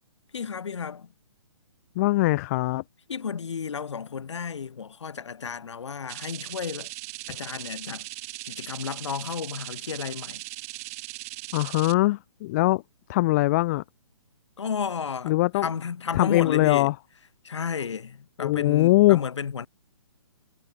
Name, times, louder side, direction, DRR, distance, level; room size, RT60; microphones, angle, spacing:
voice 1, 0.3-1.1 3.1-6.9 7.3-8.1 8.5-10.4 14.6-16.9 17.4-19.7, left 6 dB, 60° left, 6.5 m, -32 dB
voice 2, 2.0-2.8 11.5-12.8 13.1-13.8 15.2-15.7 16.1-16.9 18.4-19.3, left 19 dB, 30° left, 1.0 m, -21 dB
sound 1, 6.1-11.9, right 22 dB, 30° right, 1.1 m, -39 dB
figure-of-eight pair, 130°, 16 cm